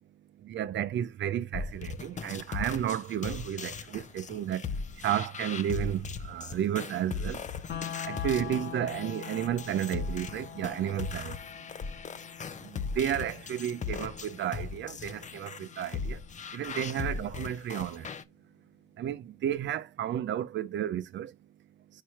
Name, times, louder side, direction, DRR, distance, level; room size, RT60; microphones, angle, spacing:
voice 1, 0.4-4.6 5.0-7.4 8.0-11.4 12.7-16.2 16.5-18.1 19.0-21.3, right 10 dB, 65° right, 0.8 m, -32 dB
sound 1, 1.5-18.2, left 5 dB, 40° left, 0.8 m, -38 dB
sound 2, 7.7-17.7, left 9 dB, 55° left, 1.5 m, -45 dB
4.9 x 4.6 x 4.3 m
cardioid pair, 90°, 20 cm